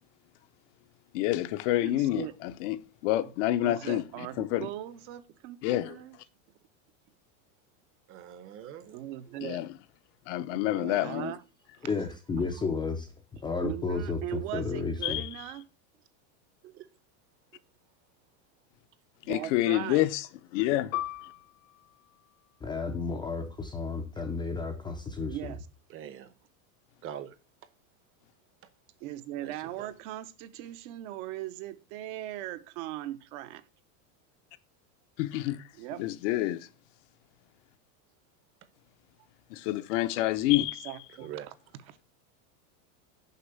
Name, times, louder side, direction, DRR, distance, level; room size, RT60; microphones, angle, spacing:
voice 1, 1.1-4.7 5.6-6.0 9.4-9.7 10.3-11.3 15.0-15.3 19.3-20.3 20.5-20.9 35.2-35.6 36.0-36.7 39.5-40.9, left 15 dB, 60° left, 0.7 m, -28 dB
voice 2, 1.7-2.3 3.2-3.3 3.6-6.2 8.9-9.6 10.5-11.4 11.8-11.9 13.6-15.7 19.2-20.0 25.3-25.7 29.0-33.6 35.8-36.0 40.5-41.5 41.9-42.0, right 14 dB, 55° right, 0.8 m, -39 dB
voice 3, 8.1-9.4 16.6-16.9 25.9-26.3 27.0-27.3 29.4-29.9 41.2-41.5, right 10 dB, 30° right, 0.8 m, -44 dB
voice 4, 11.8-13.1 13.4-15.2 22.6-25.5, left 4 dB, 10° left, 0.4 m, -32 dB
Piano, 20.9-26.0 26.3-26.5 27.2-27.6, left 14 dB, 80° left, 1.0 m, -42 dB
6.7 x 5.4 x 6.6 m
supercardioid pair, 155°, 42 cm